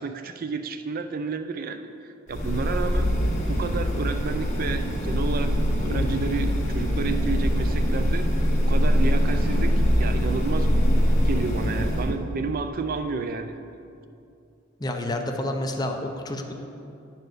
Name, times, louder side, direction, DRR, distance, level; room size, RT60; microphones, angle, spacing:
voice 1, 0.0-3.1 3.5-8.2 8.7-10.7 11.2-13.5, right 4 dB, 45° right, 8 dB, 0.4 m, -31 dB
sound 1, 2.3-12.1, equal, 35° left, 1.4 m, -23 dB
voice 2, 14.8-16.5, left 1 dB, 20° left, 3 dB, 0.6 m, -29 dB
9.5 x 4.5 x 6.4 m, 2.6 s
head